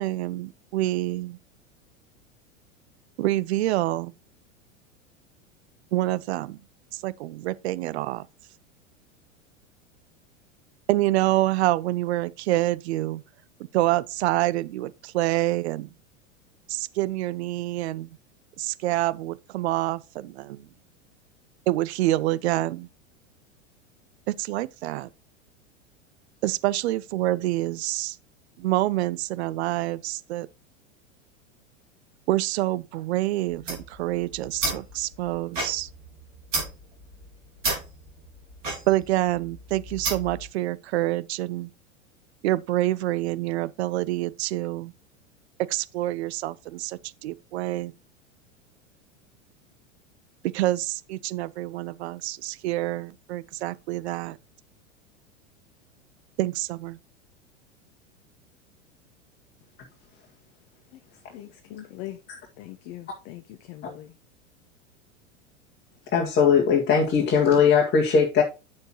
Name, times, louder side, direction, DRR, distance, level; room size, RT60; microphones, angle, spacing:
voice 1, 0.0-1.4 3.2-4.1 5.9-6.6 6.9-8.3 10.9-13.2 13.7-15.9 16.7-18.1 18.6-20.7 21.7-22.9 24.3-25.1 26.4-28.2 28.6-30.5 32.3-35.9 38.9-41.7 42.4-44.9 45.7-47.9 50.5-54.4 56.4-57.0, right 16 dB, 55° right, 0.6 m, -27 dB
sound 1, 33.5-40.5, right 2 dB, 75° right, 4.4 m, -33 dB
voice 2, 61.3-62.2 62.6-64.1, left 14 dB, 45° left, 0.9 m, -41 dB
voice 3, 66.1-68.4, left 6 dB, 30° left, 1.9 m, -19 dB
9.4 x 6.8 x 2.9 m
figure-of-eight pair, 90°, 38 cm